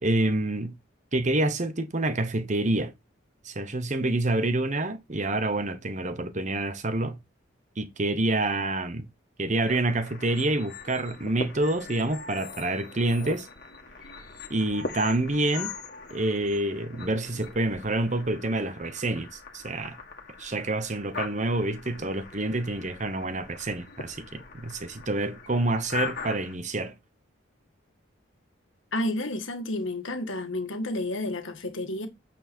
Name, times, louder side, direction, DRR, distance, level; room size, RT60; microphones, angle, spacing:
voice 1, 0.0-0.7 1.1-2.9 3.4-7.2 7.8-9.1 9.4-13.5 14.5-15.7 16.1-20.0 20.4-26.9, right 2 dB, 35° right, 1.0 m, -27 dB
sound 1, 9.6-26.5, left 5 dB, 50° left, 2.0 m, -41 dB
voice 2, 28.9-32.1, left 1 dB, 70° left, 1.6 m, -31 dB
8.7 x 4.5 x 4.4 m
head